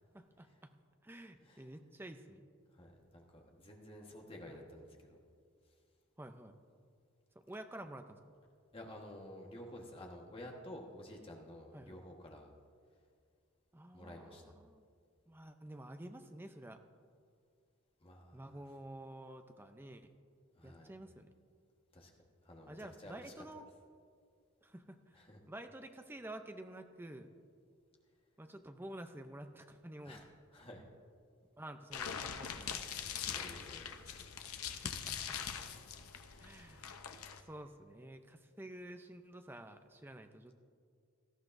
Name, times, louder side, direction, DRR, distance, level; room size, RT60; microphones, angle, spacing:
voice 1, 0.1-0.7 1.0-2.5 4.5-4.6 6.2-6.6 7.5-8.2 11.7-12.0 13.7-14.8 15.3-16.8 18.3-20.1 20.6-21.3 22.7-23.6 24.6-25.2 25.5-27.3 28.4-30.2 31.6-32.9 34.6-35.4 36.4-36.9 37.4-40.5, right 1 dB, 10° right, 7 dB, 0.5 m, -50 dB
voice 2, 2.7-5.2 8.7-12.5 13.9-14.5 18.0-18.7 20.5-20.9 21.9-22.1 22.4-23.3 25.1-25.4 30.0-30.8 32.6-34.0, left 1 dB, 25° left, 0 dB, 1.3 m, -52 dB
sound 1, 31.9-37.4, left 8 dB, 85° left, 0.7 m, -43 dB
18.0 x 13.0 x 2.6 m, 2.2 s
head